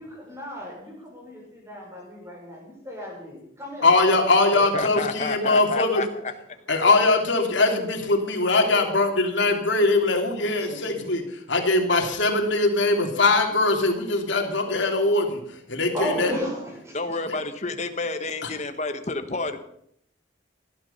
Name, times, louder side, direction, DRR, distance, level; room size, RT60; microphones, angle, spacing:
voice 1, 0.0-3.9 10.6-11.0 15.9-17.2, equal, 15° right, -1 dB, 6.4 m, -35 dB
voice 2, 3.8-6.0 6.7-11.2 11.5-15.4 15.7-16.3 18.4-18.5, left 2 dB, 70° left, 3 dB, 3.1 m, -21 dB
voice 3, 4.5-6.3 16.9-19.6, left 3 dB, 35° left, 8 dB, 1.4 m, -30 dB
19.5 x 12.5 x 5.7 m, 0.71 s
head